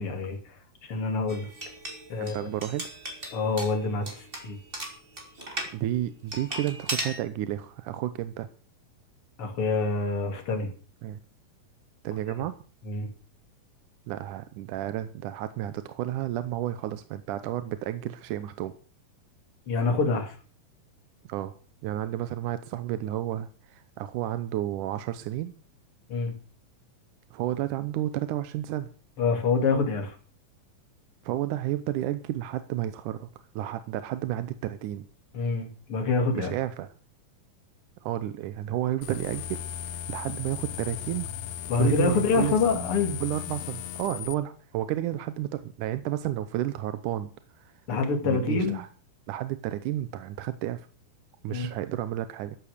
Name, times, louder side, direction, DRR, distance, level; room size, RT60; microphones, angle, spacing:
voice 1, 0.0-1.5 2.1-2.3 3.3-4.6 9.4-10.7 12.8-13.1 19.7-20.3 26.1-26.3 29.2-30.2 35.3-36.5 41.7-43.2 47.9-48.8 51.5-51.7, left 4 dB, 40° left, 4 dB, 3.2 m, -26 dB
sound 1, 1.3-5.7 6.3-7.2, right 1 dB, 15° right, 3.4 m, -37 dB
voice 2, 2.2-2.9 5.7-8.5 11.0-11.2 12.0-12.6 14.1-18.7 21.3-21.5 21.8-25.5 27.3-28.9 31.2-33.3 33.6-35.1 36.3-36.9 38.0-41.3 41.8-42.6 43.2-47.8 48.2-48.9 49.3-50.9 51.4-52.6, right 13 dB, 70° right, 12 dB, 2.1 m, -31 dB
sound 2, 39.0-44.3, left 9 dB, 70° left, 1.8 m, -37 dB
14.0 x 11.0 x 6.6 m, 0.40 s
omnidirectional pair, 4.1 m